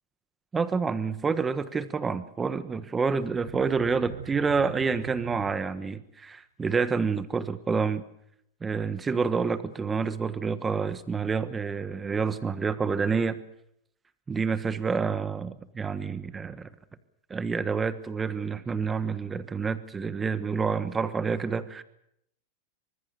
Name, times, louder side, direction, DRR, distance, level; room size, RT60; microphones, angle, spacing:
voice 1, 0.5-8.1 8.6-13.4 14.3-16.7 17.3-21.8, right 5 dB, 15° right, 14 dB, 1.3 m, -28 dB
sound 1, 3.2-6.0, right 11 dB, 85° right, 1.1 m, -42 dB
24.5 x 20.5 x 6.9 m, 0.75 s
supercardioid pair, 150°, 0 cm